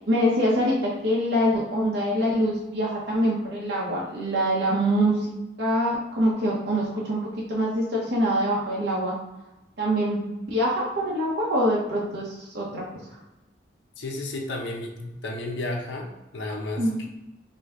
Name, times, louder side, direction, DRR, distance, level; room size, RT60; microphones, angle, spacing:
voice 1, 0.1-5.3 5.6-9.1 9.8-13.0 16.8-17.1, equal, 70° right, -5 dB, 1.0 m, -24 dB
voice 2, 14.0-17.1, left 2 dB, 85° left, 0 dB, 0.8 m, -33 dB
4.9 x 2.3 x 3.8 m, 0.97 s
head